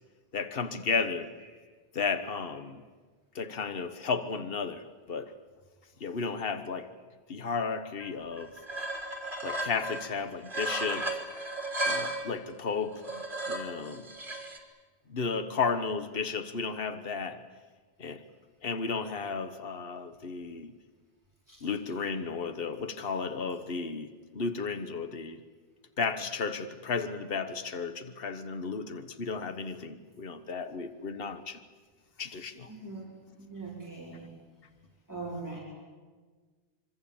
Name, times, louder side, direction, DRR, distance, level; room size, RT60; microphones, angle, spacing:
voice 1, 0.3-1.3 1.9-2.8 3.3-5.3 6.0-6.9 7.3-8.5 9.4-11.2 11.8-14.1 15.1-17.4 18.0-18.2 18.6-20.7 21.6-24.1 24.3-25.4 26.0-31.6 32.2-32.7, left 5 dB, 65° left, 9 dB, 1.5 m, -33 dB
sound 1, 8.0-8.1 8.4-10.1 10.5-12.3 12.9-14.6, right 1 dB, 55° right, 3.4 m, -34 dB
voice 2, 32.7-34.3 35.1-35.6, right 3 dB, 15° right, -4 dB, 4.6 m, -41 dB
26.5 x 23.5 x 8.8 m, 1.4 s
omnidirectional pair, 1.1 m